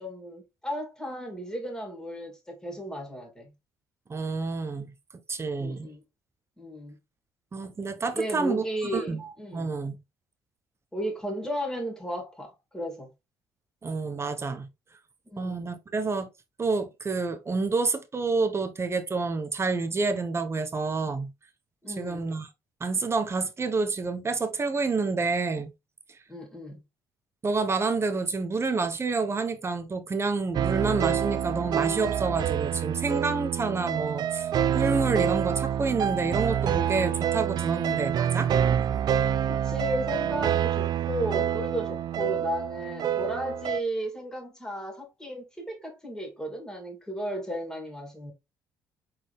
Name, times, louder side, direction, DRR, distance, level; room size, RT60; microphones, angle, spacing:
voice 1, 0.0-3.5 5.6-6.0 6.6-7.0 8.1-9.7 10.9-13.1 15.3-15.7 21.8-22.3 26.3-26.8 39.5-48.3, equal, 5° left, 2.6 m, -34 dB
voice 2, 4.1-4.9 5.3-5.9 7.5-10.0 13.8-14.7 15.4-16.3 16.6-21.3 21.9-22.5 22.8-25.7 26.1-26.2 27.4-38.5, right 4 dB, 30° right, 1.0 m, -28 dB
sound 1, 30.5-43.8, right 9 dB, 50° right, 0.4 m, -27 dB
4.2 x 3.9 x 3.2 m
supercardioid pair, 60°, 9 cm